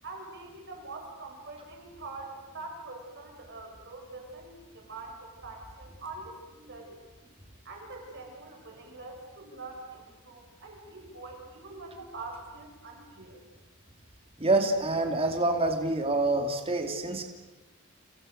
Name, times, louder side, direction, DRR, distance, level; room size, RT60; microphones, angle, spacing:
voice 1, 0.0-7.0 7.6-13.4, right 3 dB, 50° right, 1 dB, 7.6 m, -44 dB
voice 2, 14.4-17.2, right 2 dB, 25° right, 4 dB, 2.8 m, -26 dB
30.0 x 28.0 x 6.7 m, 1.2 s
head